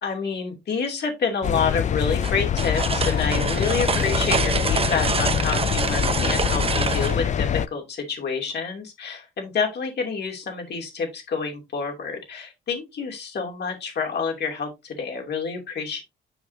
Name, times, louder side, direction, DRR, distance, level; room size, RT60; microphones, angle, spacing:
voice 1, 0.0-16.0, left 5 dB, 55° left, 2.8 m, -28 dB
sound 1, 1.4-7.7, left 9 dB, 40° left, 0.4 m, -24 dB
sound 2, 2.2-7.2, right 5 dB, 30° right, 0.8 m, -26 dB
7.1 x 5.8 x 2.7 m
cardioid pair, 90°, 20 cm